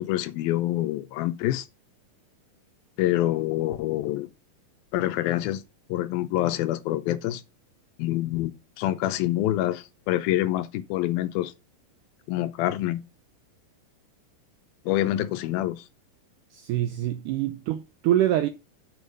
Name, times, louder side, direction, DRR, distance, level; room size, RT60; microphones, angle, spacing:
voice 1, 0.0-1.7 3.0-4.3 4.9-5.6 5.9-7.4 8.0-8.5 8.8-11.5 12.3-13.0 14.9-15.8, left 14 dB, 80° left, 2.5 m, -26 dB
voice 2, 16.5-18.5, right 12 dB, 80° right, 1.8 m, -25 dB
6.6 x 6.4 x 5.4 m
omnidirectional pair, 4.3 m